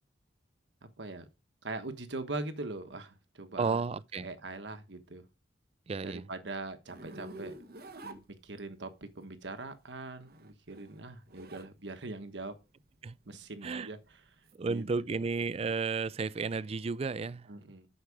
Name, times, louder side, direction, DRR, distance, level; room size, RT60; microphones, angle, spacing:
voice 1, 0.8-1.3 1.6-3.8 4.1-5.2 6.0-7.5 8.0-12.6 13.3-14.0 14.7-14.8 15.1-15.2 17.5-17.9, right 2 dB, 70° right, 1.3 m, -42 dB
voice 2, 3.6-4.3 5.9-6.3 13.0-13.2 13.6-13.9 14.5-17.5, right 4 dB, 35° right, 0.4 m, -33 dB
Zipper (clothing), 6.9-8.9 10.1-11.7 12.1-14.6, right 1 dB, 55° right, 1.0 m, -48 dB
8.4 x 6.5 x 4.9 m
head